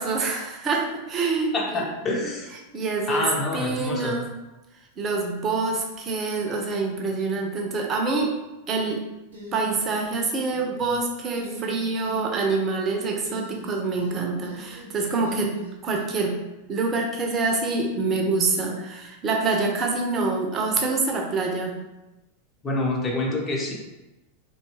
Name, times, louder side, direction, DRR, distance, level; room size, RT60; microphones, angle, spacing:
voice 1, 0.0-1.9 2.7-4.3 5.0-8.3 8.7-9.0 9.5-15.5 15.8-16.4 16.7-21.8, right 3 dB, 25° right, 1 dB, 0.5 m, -26 dB
voice 2, 1.5-2.5 3.1-4.2 22.6-23.7, left 2 dB, 20° left, -1 dB, 0.6 m, -27 dB
sound 1, 9.3-10.2 10.5-11.0 11.3-12.2 13.2-14.2 14.4-16.1, right 1 dB, 65° right, 0.7 m, -40 dB
2.6 x 2.3 x 2.9 m, 1.0 s
figure-of-eight pair, 90°, 0 cm